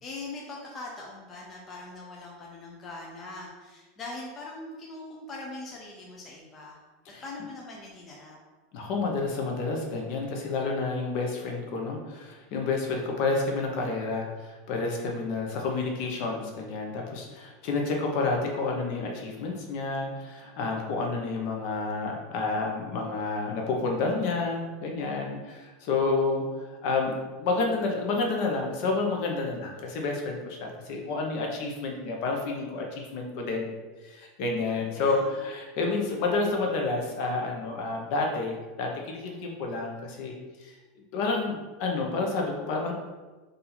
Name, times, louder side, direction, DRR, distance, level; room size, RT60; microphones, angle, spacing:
voice 1, 0.0-6.8 7.2-8.4 34.9-35.4, left 2 dB, 20° left, -3 dB, 0.6 m, -41 dB
voice 2, 8.7-33.7 34.0-40.7 41.1-42.9, left 3 dB, 50° left, 1 dB, 0.8 m, -30 dB
4.0 x 2.6 x 4.3 m, 1.2 s
supercardioid pair, 165°, 0 cm